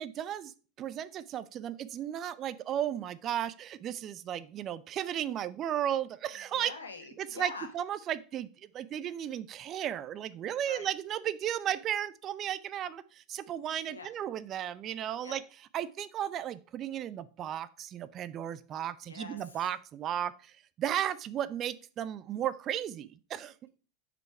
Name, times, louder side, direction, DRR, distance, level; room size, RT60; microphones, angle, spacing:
voice 1, 0.0-6.7 7.2-8.5 8.7-15.4 15.7-20.5 20.8-23.5, right 10 dB, 40° right, 15 dB, 0.6 m, -35 dB
voice 2, 6.5-7.7 10.6-10.9 13.9-14.1 15.2-15.4 19.0-19.6, left 4 dB, 90° left, 6 dB, 1.3 m, -45 dB
6.4 x 5.1 x 4.8 m, 0.38 s
hypercardioid pair, 85°, 0 cm